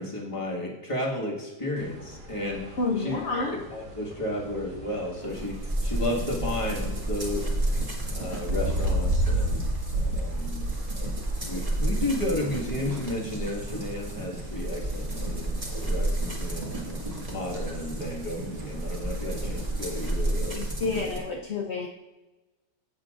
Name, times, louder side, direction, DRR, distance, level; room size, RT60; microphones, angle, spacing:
voice 1, 0.0-9.7 9.9-10.7 11.4-17.0 17.3-21.1, left 1 dB, 20° left, -3 dB, 1.9 m, -33 dB
sound 1, 1.8-20.4, right 1 dB, 60° right, 1.6 m, -35 dB
voice 2, 2.8-3.6 20.5-21.9, left 3 dB, 50° left, -1 dB, 1.0 m, -29 dB
sound 2, 5.3-21.2, right 1 dB, 25° right, 1.9 m, -31 dB
16.0 x 7.2 x 2.6 m, 1.1 s
omnidirectional pair, 1.6 m